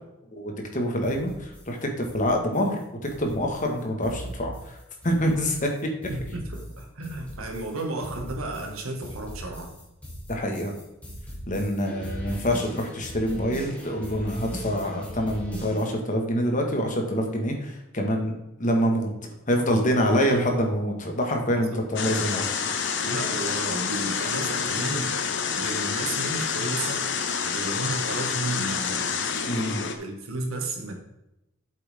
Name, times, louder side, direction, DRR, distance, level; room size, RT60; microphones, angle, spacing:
voice 1, 0.3-2.8 3.2-4.8 5.0-5.9 10.3-10.7 11.5-19.1 19.5-23.1 29.5-29.8, equal, 40° left, 2 dB, 1.8 m, -26 dB
sound 1, 1.0-15.9, right 1 dB, 5° left, 2.9 m, -40 dB
voice 2, 6.1-9.7 21.5-22.2 23.0-25.1 25.5-27.1 27.5-29.2 30.0-31.0, right 2 dB, 85° right, 2 dB, 2.1 m, -33 dB
sound 2, 22.0-30.0, left 6 dB, 60° left, 1.0 m, -28 dB
8.5 x 7.6 x 3.7 m, 0.91 s
head